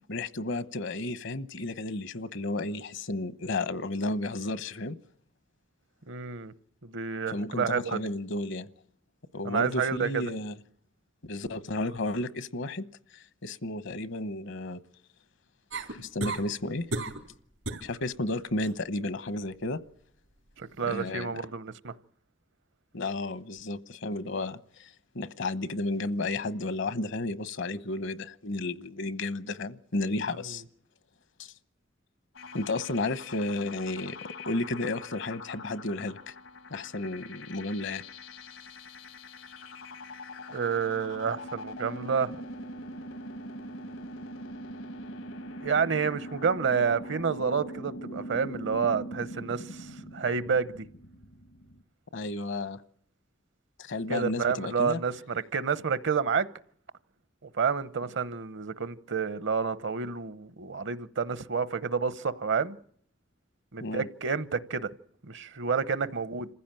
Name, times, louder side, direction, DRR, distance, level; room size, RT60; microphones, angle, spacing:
voice 1, 0.1-5.0 7.3-8.7 9.3-10.6 11.3-12.8 13.1-14.8 15.9-16.9 17.8-19.8 20.8-21.4 22.9-30.6 31.4-31.5 32.5-36.3 36.7-38.0 52.1-52.8 53.8-55.0 63.8-64.1, left 2 dB, 70° left, 1.0 m, -33 dB
voice 2, 6.1-6.5 6.8-8.0 9.4-10.2 20.6-21.9 30.3-30.6 40.5-42.4 45.6-50.9 54.1-56.5 57.4-62.8 63.7-64.9 65.2-66.5, right 6 dB, 65° right, 0.9 m, -29 dB
sound 1, 15.7-16.5 16.9-17.3 17.6-17.9 18.3-18.8 20.6-20.7, right 2 dB, 90° right, 3.8 m, -34 dB
sound 2, 32.3-51.8, left 1 dB, 85° left, 1.6 m, -42 dB
27.5 x 15.5 x 9.0 m
head